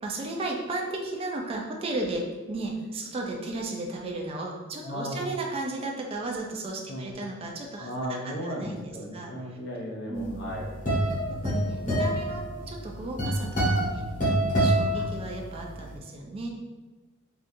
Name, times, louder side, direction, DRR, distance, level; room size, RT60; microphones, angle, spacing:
voice 1, 0.0-9.6 10.1-10.4 11.3-14.1 14.6-16.5, right 2 dB, 25° right, 0 dB, 0.3 m, -34 dB
voice 2, 4.8-5.2 6.9-7.1 7.8-11.2 14.9-15.0, equal, 55° left, -3 dB, 0.5 m, -36 dB
sound 1, 10.2-15.7, right 1 dB, 40° left, 1.2 m, -26 dB
3.6 x 2.4 x 2.6 m, 1.3 s
head